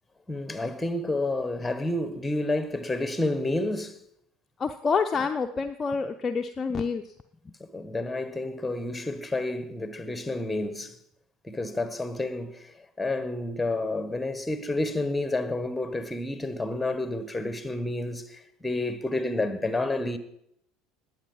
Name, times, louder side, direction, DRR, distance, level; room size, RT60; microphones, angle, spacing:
voice 1, 0.3-4.0 7.6-11.0 11.4-20.2, left 2 dB, 10° left, 1.6 m, -30 dB
voice 2, 4.6-7.1 7.4-7.5, left 5 dB, 25° left, 0.7 m, -28 dB
19.5 x 8.0 x 5.6 m
figure-of-eight pair, 65°, 0 cm